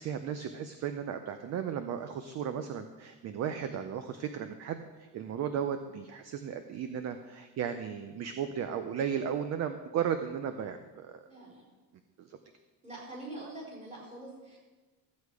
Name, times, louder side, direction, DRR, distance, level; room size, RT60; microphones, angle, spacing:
voice 1, 0.0-11.2 12.2-12.4, right 8 dB, 35° right, 9 dB, 0.5 m, -35 dB
voice 2, 11.2-11.6 12.8-14.6, right 2 dB, 15° right, -6 dB, 4.4 m, -44 dB
14.0 x 8.4 x 4.7 m, 1.3 s
cardioid pair, 165°, 47 cm